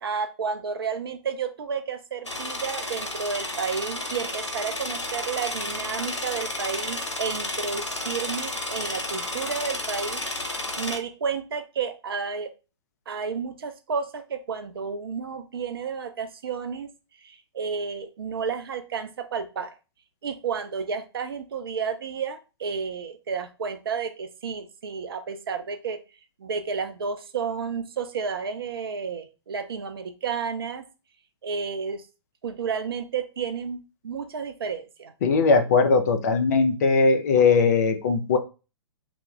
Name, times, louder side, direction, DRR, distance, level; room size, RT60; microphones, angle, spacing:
voice 1, 0.0-10.2 10.5-12.5 13.1-16.9 17.2-19.7 20.2-26.0 26.4-30.8 31.4-32.1 32.4-35.1, right 6 dB, 55° right, 9 dB, 0.4 m, -31 dB
sound 1, 2.2-11.0, left 1 dB, 85° left, 0.6 m, -32 dB
voice 2, 35.2-38.4, left 4 dB, 35° left, 7 dB, 0.4 m, -20 dB
2.2 x 2.0 x 2.9 m, 0.31 s
figure-of-eight pair, 120°, 15 cm